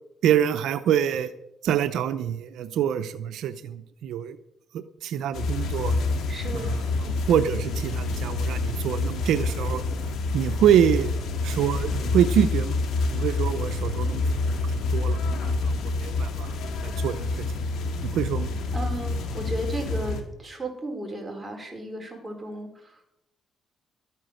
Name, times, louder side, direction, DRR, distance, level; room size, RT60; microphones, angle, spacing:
voice 1, 0.2-1.3 1.6-4.4 4.7-6.0 6.5-9.8 10.3-11.1 11.4-12.8 13.1-16.5 16.8-17.4 18.0-18.5, right 9 dB, 80° right, 10 dB, 0.6 m, -26 dB
sound 1, 5.3-20.2, left 3 dB, 80° left, 2.1 m, -27 dB
voice 2, 6.3-6.7 18.0-18.2 18.7-22.9, right 1 dB, 15° right, 1 dB, 4.4 m, -34 dB
12.5 x 9.2 x 6.5 m, 0.82 s
cardioid pair, 90°, 0 cm